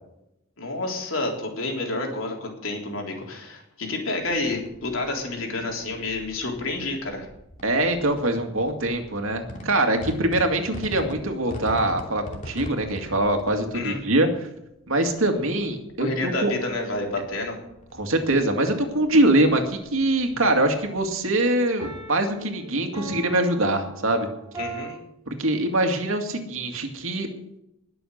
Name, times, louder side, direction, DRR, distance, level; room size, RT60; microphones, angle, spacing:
voice 1, 0.6-7.3 13.7-14.0 16.0-17.6 24.6-25.0, left 2 dB, 80° left, 1 dB, 3.7 m, -29 dB
sound 1, 4.3-22.3, equal, 40° left, 2.7 m, -43 dB
voice 2, 7.6-14.3 14.9-16.5 18.0-24.3 25.3-27.3, right 1 dB, 90° right, 5 dB, 2.3 m, -23 dB
sound 2, 16.3-17.4 21.8-25.0, right 3 dB, 20° right, 5.5 m, -40 dB
20.5 x 7.0 x 6.6 m, 0.84 s
head